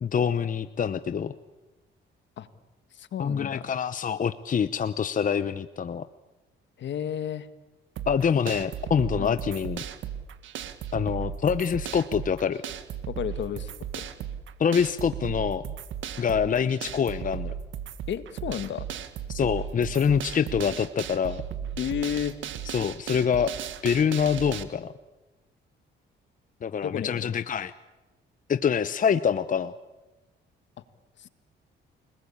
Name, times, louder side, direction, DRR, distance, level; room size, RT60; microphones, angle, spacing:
voice 1, 0.0-1.3 3.2-6.0 8.1-9.8 10.9-12.6 14.6-15.6 16.2-17.5 19.3-21.4 22.7-23.5 23.8-24.9 26.6-27.7 28.5-29.7, left 7 dB, 40° left, 13 dB, 0.9 m, -25 dB
voice 2, 2.9-3.7 6.8-7.5 9.2-9.4 13.1-14.1 18.1-18.9 21.8-22.4 26.8-27.2 31.2-31.3, left 9 dB, 65° left, 12 dB, 1.7 m, -32 dB
sound 1, 8.0-24.6, right 9 dB, 75° right, 1.8 m, -36 dB
30.0 x 20.0 x 8.6 m, 1.1 s
cardioid pair, 90°, 20 cm